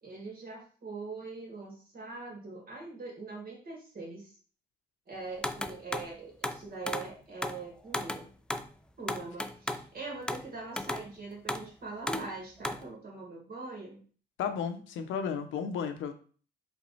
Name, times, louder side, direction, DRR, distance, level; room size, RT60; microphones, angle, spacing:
voice 1, 0.0-4.3 5.1-8.2 9.0-14.0, right 3 dB, 50° right, -2 dB, 1.9 m, -42 dB
sound 1, 5.4-6.1 6.4-7.1 7.4-7.6 7.9-8.7 9.1-9.9 10.3-10.5 10.8-11.1 11.5-11.7 12.1-12.3 12.6-12.9, left 1 dB, 5° left, 0.3 m, -35 dB
voice 2, 14.4-16.1, left 7 dB, 80° left, 7 dB, 0.6 m, -33 dB
3.5 x 3.0 x 4.1 m, 0.41 s
cardioid pair, 90°, 20 cm